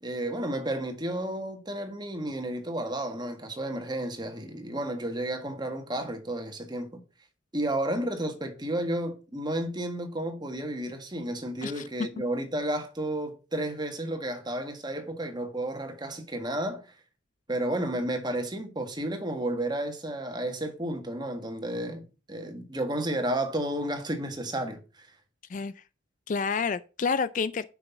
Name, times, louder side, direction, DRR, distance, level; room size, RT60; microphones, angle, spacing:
voice 1, 0.0-7.0 7.5-16.9 17.5-25.1, right 1 dB, 20° right, 1.6 m, -32 dB
voice 2, 25.5-25.8 26.3-27.6, left 5 dB, 40° left, 0.4 m, -29 dB
6.4 x 6.2 x 7.0 m
head